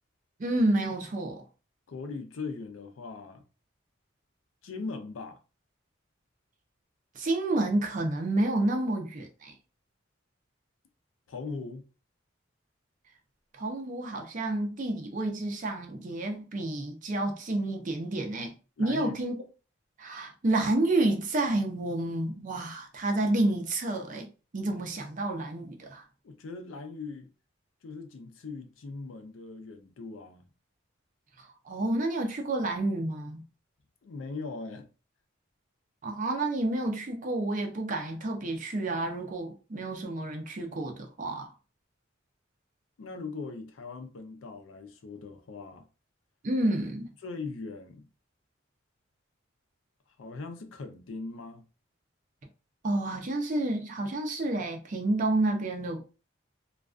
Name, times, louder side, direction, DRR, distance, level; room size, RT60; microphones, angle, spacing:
voice 1, 0.4-1.4 7.1-9.5 13.6-18.5 18.8-19.3 20.0-24.3 24.5-26.0 31.4-33.4 36.0-41.5 46.4-47.1 52.8-56.0, right 2 dB, 40° right, 0.5 m, -29 dB
voice 2, 1.9-3.4 4.6-5.4 11.3-11.8 18.8-19.2 26.2-27.3 27.8-30.5 34.0-34.9 43.0-45.9 47.2-48.1 50.2-51.6, left 4 dB, 75° left, 0.4 m, -40 dB
2.4 x 2.2 x 2.3 m
head